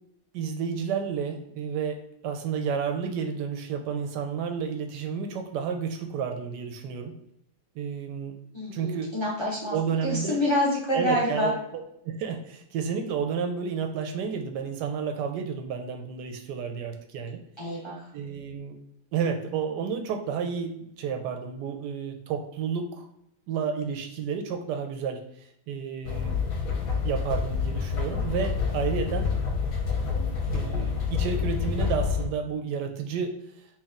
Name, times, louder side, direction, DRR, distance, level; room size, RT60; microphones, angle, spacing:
voice 1, 0.3-7.2 7.7-8.4 8.7-9.1 9.7-10.4 10.9-11.5 12.0-17.4 18.1-18.8 19.1-23.0 23.5-26.4 27.0-29.3 30.5-33.3, right 6 dB, 75° right, 4 dB, 1.1 m, -31 dB
voice 2, 8.5-11.5 17.6-18.1, left 1 dB, 35° left, -5 dB, 0.4 m, -27 dB
sound 1, 26.0-32.3, left 5 dB, 60° left, 1.0 m, -28 dB
3.2 x 3.0 x 3.6 m, 0.76 s
omnidirectional pair, 2.1 m